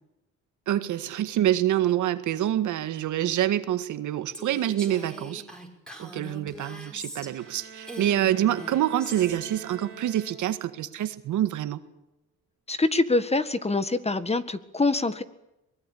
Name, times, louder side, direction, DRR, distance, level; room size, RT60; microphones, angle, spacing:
voice 1, 0.7-5.4 6.0-11.8, right 12 dB, 80° right, 11 dB, 1.8 m, -26 dB
Female speech woman speaking, 4.3-7.5 7.8-9.4, right 1 dB, 5° left, 5.8 m, -41 dB
Bowed string instrument, 7.1-10.8, right 6 dB, 45° right, 2.4 m, -45 dB
voice 2, 12.7-15.2, left 3 dB, 20° left, 12 dB, 1.8 m, -25 dB
23.5 x 21.0 x 8.5 m, 0.88 s
cardioid pair, 90°, 30 cm